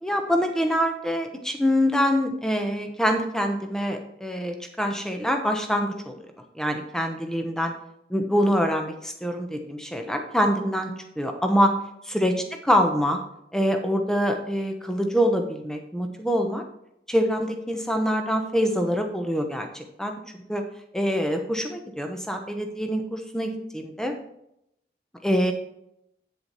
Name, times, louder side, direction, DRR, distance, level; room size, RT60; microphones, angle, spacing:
voice 1, 0.0-6.2 6.5-7.7 8.1-11.7 12.1-12.3 12.6-13.2 13.5-16.6 17.1-20.1 20.5-20.6 20.9-24.1 25.2-25.5, equal, 5° left, 4 dB, 0.9 m, -25 dB
8.4 x 7.7 x 4.2 m, 0.79 s
head